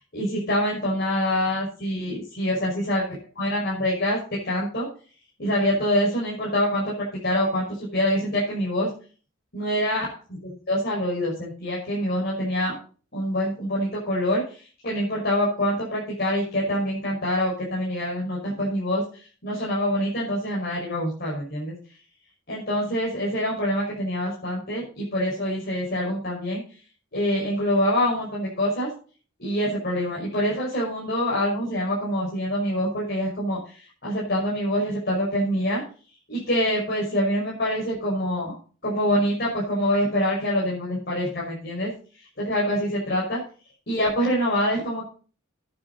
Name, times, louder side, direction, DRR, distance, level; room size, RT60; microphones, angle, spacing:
voice 1, 0.1-3.0 3.4-4.2 4.4-4.9 5.4-6.9 7.2-8.9 9.5-12.7 13.1-19.0 19.4-21.7 22.5-26.6 27.1-28.9 29.4-35.8 36.3-38.5 38.8-41.9 42.4-43.4 43.9-45.1, equal, 50° left, -5 dB, 5.9 m, -25 dB
13.0 x 9.9 x 4.1 m, 0.38 s
head